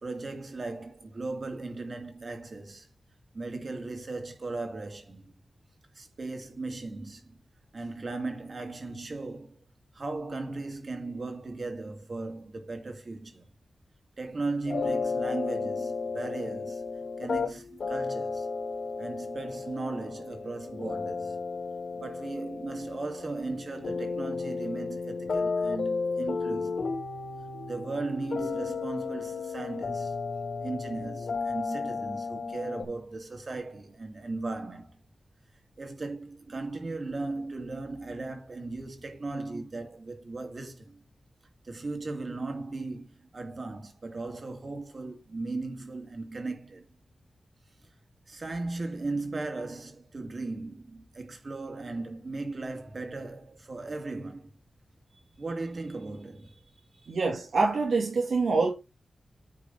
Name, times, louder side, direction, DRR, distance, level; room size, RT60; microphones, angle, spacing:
voice 1, 0.0-2.9 3.3-5.4 5.9-7.4 7.7-9.6 9.9-13.5 14.2-18.5 19.0-21.4 21.9-26.9 27.6-30.2 30.6-35.0 35.8-41.0 41.6-46.9 48.3-54.5 55.4-56.6 56.9-57.2, right 3 dB, 45° right, 2.2 m, -37 dB
sound 1, 14.7-32.8, left 4 dB, 80° left, 2.7 m, -33 dB
voice 2, 57.1-58.7, right 3 dB, 85° right, 2.1 m, -25 dB
9.8 x 3.6 x 5.3 m
wide cardioid pair, 120°, 0 cm